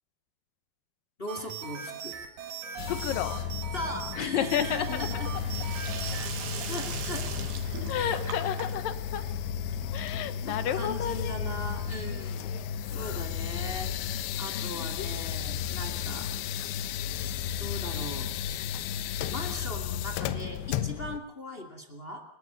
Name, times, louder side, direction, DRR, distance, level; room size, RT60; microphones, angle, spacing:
voice 1, 1.2-2.1 3.7-5.3 6.7-7.3 7.9-8.2 10.4-12.5 12.9-13.9 14.4-16.3 17.6-18.3 19.3-22.2, left 1 dB, 25° left, 5 dB, 1.4 m, -38 dB
sound 1, 1.3-6.3, right 7 dB, 55° right, 3.7 m, -40 dB
sound 2, 2.8-21.2, left 8 dB, 85° left, 3.1 m, -33 dB
voice 2, 2.9-3.4 4.2-5.1 7.9-9.2 9.9-11.4 12.1-12.6 12.9-13.6 14.5-15.1, left 10 dB, 65° left, 11 dB, 2.5 m, -33 dB
Sink (filling or washing), 4.3-11.1, right 7 dB, 70° right, 3.7 m, -41 dB
28.5 x 12.5 x 8.0 m, 0.77 s
omnidirectional pair, 5.0 m